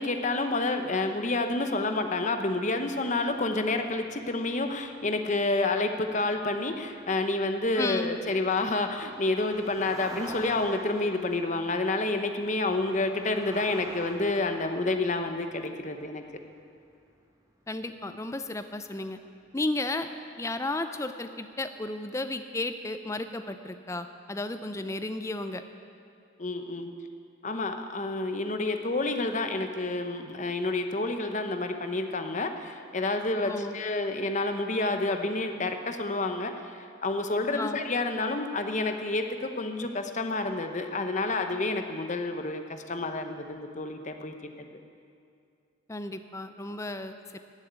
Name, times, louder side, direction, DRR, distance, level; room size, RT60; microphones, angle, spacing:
voice 1, 0.0-16.2 26.4-26.9 27.4-44.8, left 2 dB, 35° left, 6 dB, 0.8 m, -29 dB
sound 1, 2.7-18.1 18.3-18.7 19.1-19.3, right 1 dB, 15° right, 1.2 m, -49 dB
voice 2, 7.8-8.1 17.7-19.2 19.5-20.1 20.4-25.6 33.4-33.8 37.5-37.8 45.9-47.4, left 2 dB, 15° left, 9 dB, 0.5 m, -33 dB
15.0 x 7.2 x 9.5 m, 2.4 s
head